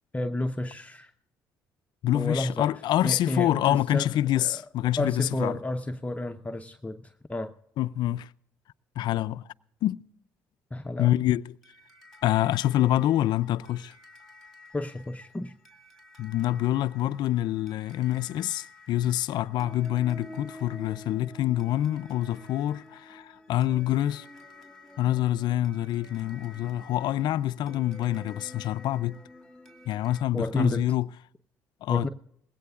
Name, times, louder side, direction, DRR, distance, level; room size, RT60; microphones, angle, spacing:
voice 1, 0.1-1.1 2.1-2.7 3.0-4.6 5.0-7.5 10.7-11.1 14.7-15.5 30.3-30.8 31.9-32.1, left 1 dB, 15° left, 0.7 m, -31 dB
voice 2, 2.0-5.6 7.8-8.3 9.0-9.5 9.8-10.0 11.0-11.6 12.2-13.9 16.2-24.3 25.0-29.2 29.9-31.1 31.8-32.1, left 13 dB, 65° left, 0.4 m, -26 dB
sound 1, 11.6-30.2, left 1 dB, ahead, 2.2 m, -50 dB
20.0 x 16.5 x 2.4 m
hypercardioid pair, 60°, 8 cm